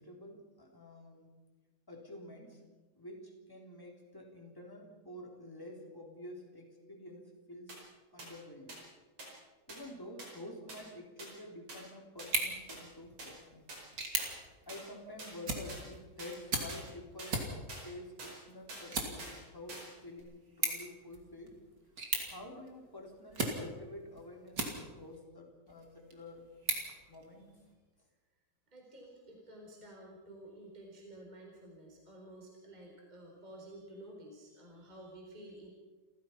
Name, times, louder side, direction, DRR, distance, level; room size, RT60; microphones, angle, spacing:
voice 1, 0.0-1.3 1.9-2.7 2.9-7.8 8.1-8.9 9.7-13.6 14.6-17.4 17.8-21.6 22.2-26.5 27.1-27.6, left 1 dB, 5° left, 0 dB, 3.3 m, -49 dB
sound 1, 7.7-7.8 8.2-8.3 8.7-8.8 9.2-9.3 9.7-9.8 10.2-10.3 10.7-10.8 11.2-11.3 11.7-11.8 12.2-12.3 12.7-12.8 13.2-13.3 13.7-13.8 14.2-14.3 14.7-14.8 15.2-15.3 15.7-15.8 16.2-16.3 16.7-16.8 17.2-17.3 17.7-17.8 18.2-18.3 18.7-18.9 19.2-19.4 19.7-19.9 20.2-20.3, right 2 dB, 55° right, 6.2 m, -46 dB
sound 2, 12.2-25.2 25.7-27.7, right 3 dB, 35° right, 3.2 m, -40 dB
voice 2, 28.7-35.7, right 1 dB, 15° right, 0 dB, 4.0 m, -52 dB
29.5 x 15.0 x 5.9 m, 1.2 s
omnidirectional pair, 3.3 m